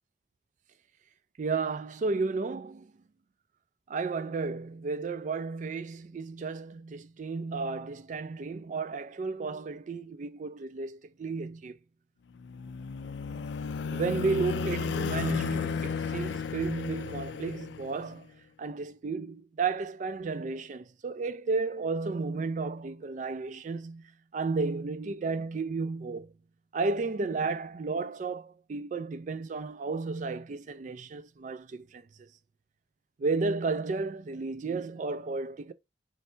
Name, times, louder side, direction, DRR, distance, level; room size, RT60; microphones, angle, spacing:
voice 1, 1.4-2.9 3.9-11.8 13.3-13.4 13.9-18.3 18.6-24.0 24.3-26.3 26.7-32.3 33.2-35.7, right 4 dB, 40° right, 0.3 m, -33 dB
sound 1, 12.4-18.2, left 6 dB, 70° left, 0.4 m, -33 dB
3.2 x 2.7 x 4.4 m
head